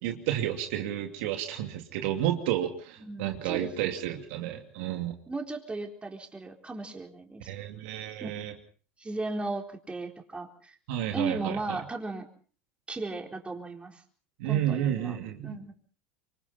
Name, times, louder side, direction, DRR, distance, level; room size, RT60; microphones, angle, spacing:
voice 1, 0.0-5.1 7.5-8.5 10.9-11.8 14.4-15.6, right 11 dB, 70° right, 4 dB, 2.7 m, -31 dB
voice 2, 3.0-3.7 5.3-7.5 8.2-8.3 9.0-10.7 11.1-12.3 12.9-14.0 14.5-15.2 15.4-15.7, right 3 dB, 15° right, 3 dB, 4.1 m, -36 dB
26.5 x 24.0 x 4.3 m, 0.43 s
hypercardioid pair, 85°, 7 cm